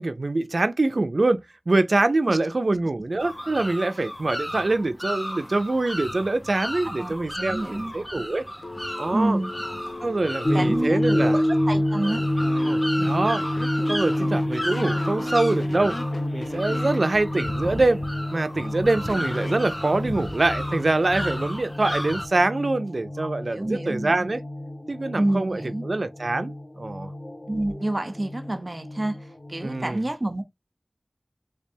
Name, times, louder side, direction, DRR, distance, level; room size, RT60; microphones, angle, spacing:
voice 1, 0.0-8.4 9.0-9.4 10.0-11.4 12.7-13.4 13.9-16.0 16.3-18.0 18.3-24.4 24.9-27.1 29.6-30.0, right 2 dB, 85° right, 0.4 m, -24 dB
sound 1, 3.2-22.3, equal, 15° left, 0.6 m, -34 dB
voice 2, 7.0-7.9 9.1-9.5 10.5-12.2 23.2-24.3 25.2-25.9 27.5-30.4, right 1 dB, 50° right, 0.7 m, -28 dB
Telephone, 8.6-11.4 12.1-12.7 13.3-17.0 19.1-19.6, left 2 dB, 85° left, 0.6 m, -38 dB
sound 2, 10.4-29.9, left 1 dB, 60° left, 0.9 m, -28 dB
3.3 x 3.3 x 2.7 m
wide cardioid pair, 40°, 0 cm